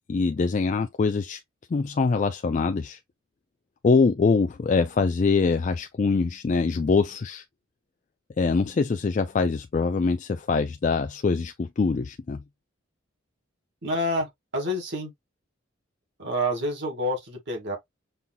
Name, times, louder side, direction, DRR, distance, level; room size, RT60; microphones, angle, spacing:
voice 1, 0.1-1.4 1.7-3.0 3.8-7.4 8.4-12.4, left 4 dB, 40° left, 0.3 m, -24 dB
voice 2, 13.8-15.1 16.2-17.8, equal, 60° right, 2.0 m, -28 dB
5.5 x 2.9 x 2.2 m
head